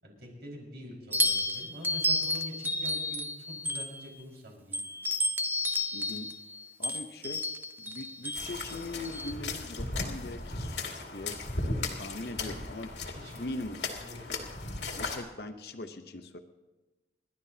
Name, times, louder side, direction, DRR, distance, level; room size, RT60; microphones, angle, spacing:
voice 1, 0.0-4.8 13.1-13.4 14.0-14.4, left 1 dB, 65° right, -1 dB, 4.9 m, -45 dB
sound 1, 1.1-4.2 4.7-9.3, left 1 dB, 10° right, 0.5 m, -32 dB
voice 2, 5.9-6.3 6.8-12.9 13.4-13.8 15.0-16.4, left 2 dB, 60° left, 8 dB, 0.8 m, -41 dB
sound 2, 8.3-15.2, left 3 dB, 90° left, 2.2 m, -36 dB
29.0 x 12.0 x 2.8 m, 1.1 s
head